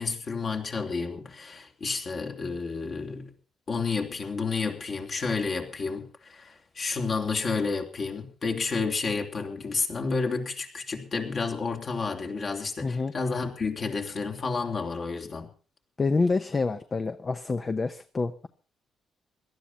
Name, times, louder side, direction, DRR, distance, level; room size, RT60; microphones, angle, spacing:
voice 1, 0.0-3.3 3.7-15.5, left 4 dB, 45° left, 3 dB, 3.4 m, -30 dB
voice 2, 12.8-13.1 16.0-18.5, left 3 dB, 30° left, 11 dB, 0.9 m, -27 dB
18.0 x 12.5 x 5.6 m, 0.38 s
cardioid pair, 90°, 0 cm